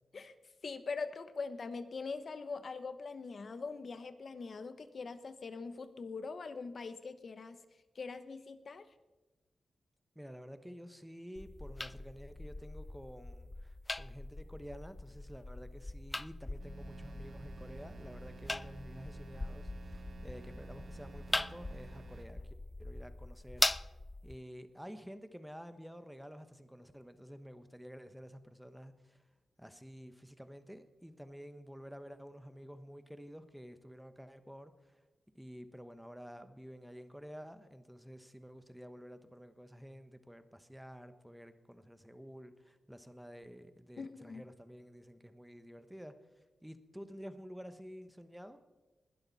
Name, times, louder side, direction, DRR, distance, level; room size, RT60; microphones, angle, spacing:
voice 1, 0.6-7.6 7.9-8.9 44.0-44.4, left 4 dB, 50° left, 11 dB, 1.0 m, -42 dB
voice 2, 10.1-22.5 22.8-23.9 24.2-29.2 29.6-35.0 35.3-48.6, equal, ahead, 10 dB, 1.1 m, -51 dB
sound 1, 11.4-24.4, left 2 dB, 20° left, 0.3 m, -41 dB
sound 2, 16.6-22.3, right 4 dB, 60° right, 1.5 m, -52 dB
20.5 x 12.0 x 4.2 m, 1.1 s
wide cardioid pair, 110°, 0 cm